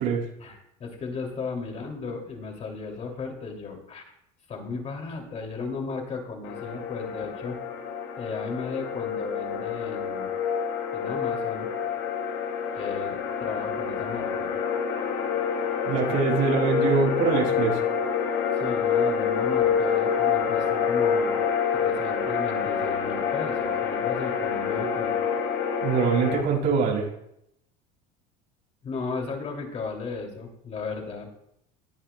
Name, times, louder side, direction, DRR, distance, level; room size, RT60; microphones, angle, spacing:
voice 1, 0.4-4.0 4.5-7.6 8.2-10.3 10.9-11.7 12.7-14.5 18.5-21.4 21.7-25.2 28.8-31.3, left 4 dB, 35° left, 2 dB, 2.8 m, -35 dB
sound 1, 6.4-26.4, left 7 dB, 65° left, 2.7 m, -27 dB
voice 2, 15.8-17.8 25.8-27.1, right 5 dB, 65° right, -4 dB, 5.8 m, -23 dB
19.5 x 11.0 x 2.3 m, 0.75 s
cardioid pair, 135°, 20 cm